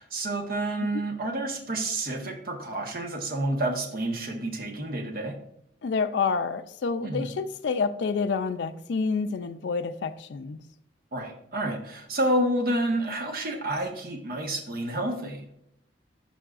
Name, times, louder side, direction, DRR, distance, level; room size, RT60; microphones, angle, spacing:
voice 1, 0.0-5.4 7.0-7.3 11.1-15.4, right 1 dB, 50° right, 4 dB, 1.1 m, -29 dB
voice 2, 5.8-10.6, left 5 dB, 70° left, 8 dB, 0.4 m, -28 dB
11.5 x 5.4 x 2.4 m, 0.76 s
head